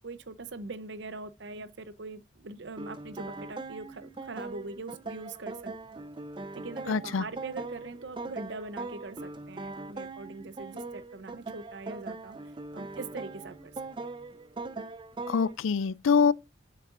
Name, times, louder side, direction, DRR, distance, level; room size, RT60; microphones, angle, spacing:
voice 1, 0.0-5.6 6.5-12.3 12.7-13.7, right 3 dB, 60° right, 0.7 m, -42 dB
sound 1, 2.8-15.6, right 3 dB, 25° right, 0.4 m, -41 dB
voice 2, 6.9-7.2 15.3-16.3, left 6 dB, 90° left, 0.4 m, -24 dB
7.8 x 6.5 x 2.5 m
head